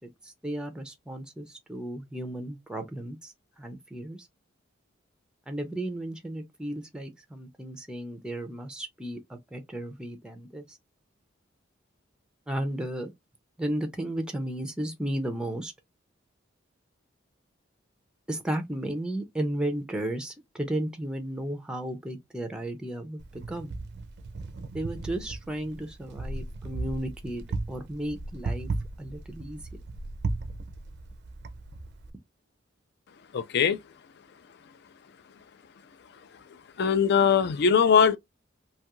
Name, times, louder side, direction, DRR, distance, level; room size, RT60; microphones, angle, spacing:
voice 1, 0.2-3.3 3.6-4.2 5.5-10.6 12.5-13.1 13.6-15.7 18.3-23.7 24.7-28.7 29.0-29.6, right 1 dB, 5° right, 0.4 m, -34 dB
Wind, 23.2-32.1, right 3 dB, 60° right, 0.4 m, -36 dB
voice 2, 33.3-33.8 36.8-38.2, left 7 dB, 60° left, 0.4 m, -21 dB
2.6 x 2.4 x 2.8 m
head